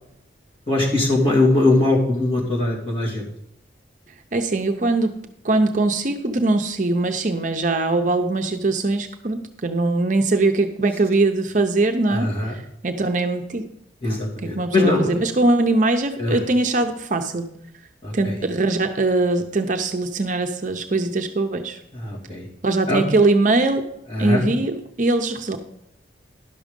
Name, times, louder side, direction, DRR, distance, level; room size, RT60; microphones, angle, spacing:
voice 1, 0.7-3.2 12.1-12.5 14.0-15.2 16.2-16.4 18.0-18.4 21.9-22.5 22.9-23.0 24.1-24.4, left 2 dB, 30° left, -4 dB, 2.8 m, -21 dB
voice 2, 4.3-5.2 5.4-12.3 12.8-13.7 14.0-17.6 18.1-21.8 22.6-23.9 24.2-25.6, right 2 dB, 40° right, 6 dB, 0.6 m, -21 dB
11.5 x 6.2 x 5.2 m, 0.76 s
head